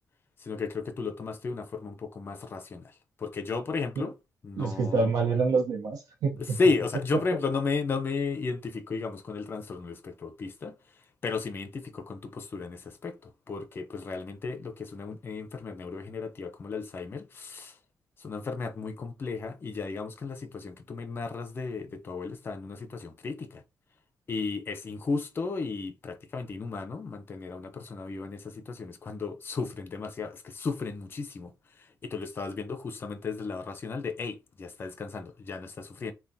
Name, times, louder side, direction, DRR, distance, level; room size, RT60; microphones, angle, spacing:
voice 1, 0.4-4.2 4.4-5.1 6.4-10.8 11.2-17.8 18.2-23.6 24.3-36.1, left 4 dB, 35° left, 0.5 m, -34 dB
voice 2, 4.6-6.6, right 4 dB, 90° right, 0.8 m, -27 dB
3.5 x 2.2 x 2.6 m
cardioid pair, 125°, 6 cm